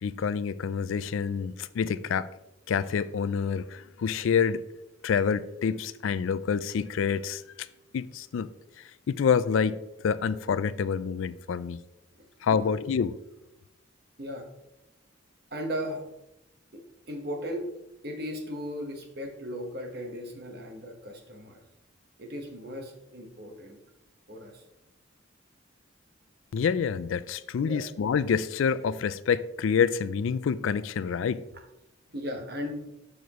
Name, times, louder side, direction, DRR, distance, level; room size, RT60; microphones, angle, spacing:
voice 1, 0.0-2.3 2.7-4.6 5.0-7.4 7.9-8.5 9.1-9.8 10.0-11.8 12.4-13.2 26.5-31.4, left 6 dB, 80° left, 16 dB, 0.3 m, -27 dB
voice 2, 12.4-12.8 14.2-14.5 15.5-16.0 16.7-17.7 18.0-21.6 22.2-23.8 24.3-24.6 27.6-27.8 32.1-32.9, equal, 50° right, 3 dB, 1.3 m, -37 dB
7.0 x 6.3 x 3.0 m, 0.90 s
head